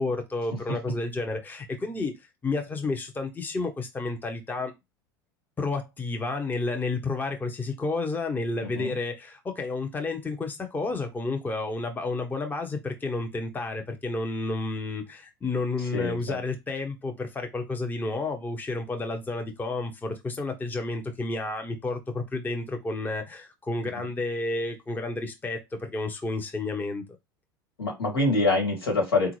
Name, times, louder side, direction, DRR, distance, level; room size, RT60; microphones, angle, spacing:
voice 1, 0.0-2.1 2.4-4.7 5.6-27.0, left 3 dB, 15° left, 0.7 m, -31 dB
voice 2, 15.9-16.4 24.0-24.1 27.8-29.3, left 2 dB, 85° left, 1.6 m, -25 dB
3.7 x 2.4 x 3.0 m
hypercardioid pair, 80°, 13 cm